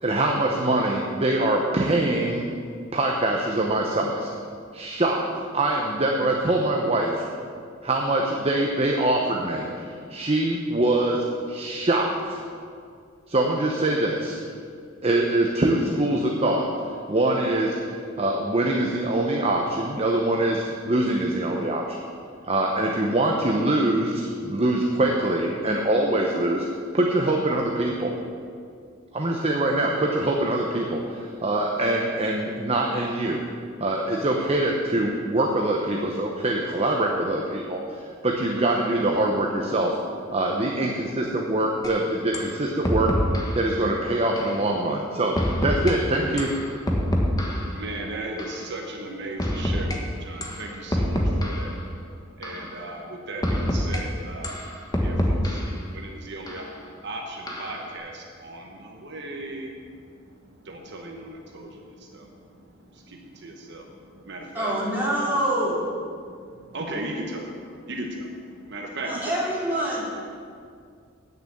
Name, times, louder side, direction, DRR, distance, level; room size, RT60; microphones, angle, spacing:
voice 1, 0.0-2.5 2.9-4.3 4.7-7.3 7.8-12.4 13.3-14.4 15.0-17.8 18.2-22.0 22.4-26.7 26.9-28.2 29.1-33.4 33.8-40.0 40.3-43.2 43.5-46.5, right 1 dB, 30° right, 0.8 m, -24 dB
sound 1, 41.8-41.9 42.3-42.5 42.8-43.6 44.4-44.6 45.4-45.9 46.4-47.7 48.4-48.6 49.4-50.0 50.4-50.6 50.9-51.7 52.4-52.7 53.4-54.0 54.4-55.7 56.5-56.6 57.5-57.8, equal, 20° left, 1.3 m, -25 dB
voice 2, 47.3-54.6 55.0-56.6 57.0-60.0 60.3-64.7 66.2-69.2, right 1 dB, 60° right, 1.2 m, -37 dB
voice 3, 64.5-65.8 69.0-70.0, right 1 dB, 10° right, 3.1 m, -25 dB
8.9 x 6.8 x 8.5 m
head